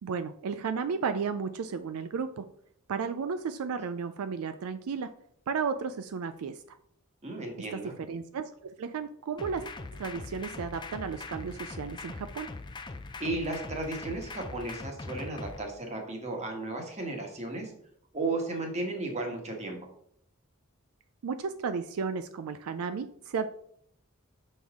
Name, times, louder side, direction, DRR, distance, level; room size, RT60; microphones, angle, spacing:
voice 1, 0.0-2.5 2.9-5.1 5.5-6.6 7.6-9.6 9.9-12.5 21.2-23.5, right 5 dB, 85° right, 11 dB, 0.4 m, -33 dB
voice 2, 7.2-7.9 13.2-17.7 18.1-19.8, right 2 dB, 30° right, 2 dB, 1.3 m, -34 dB
sound 1, 9.4-15.6, left 3 dB, 20° left, 0.4 m, -41 dB
6.1 x 5.5 x 3.6 m, 0.67 s
head